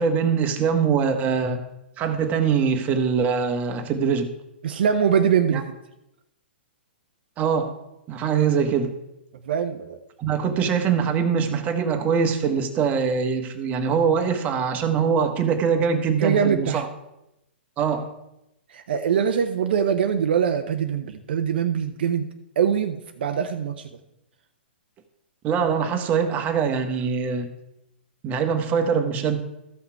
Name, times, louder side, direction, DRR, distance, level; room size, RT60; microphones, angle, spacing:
voice 1, 0.0-1.6 2.0-4.3 5.5-5.6 7.4-7.7 8.1-8.9 10.2-16.9 17.8-18.1 25.4-27.5 28.2-29.4, right 6 dB, 25° right, 6 dB, 1.2 m, -23 dB
voice 2, 4.6-5.6 9.5-10.0 16.2-16.8 18.7-22.3 22.6-23.9, right 7 dB, 60° right, 7 dB, 0.7 m, -23 dB
14.0 x 5.7 x 4.6 m, 0.89 s
hypercardioid pair, 120°, 6 cm